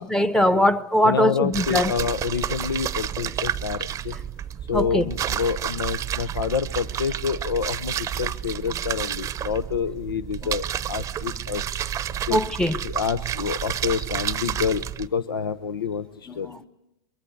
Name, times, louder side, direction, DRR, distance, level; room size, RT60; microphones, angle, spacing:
voice 1, 0.0-1.9 4.7-5.0 12.3-12.8 16.3-16.6, left 1 dB, 5° left, 14 dB, 1.0 m, -21 dB
voice 2, 1.0-4.2 4.7-11.7 12.3-12.4 12.8-16.5, left 6 dB, 80° left, 14 dB, 0.8 m, -28 dB
sound 1, 1.5-15.1, right 10 dB, 25° right, 0.8 m, -30 dB
23.5 x 22.5 x 8.0 m, 0.88 s
hypercardioid pair, 95°, 12 cm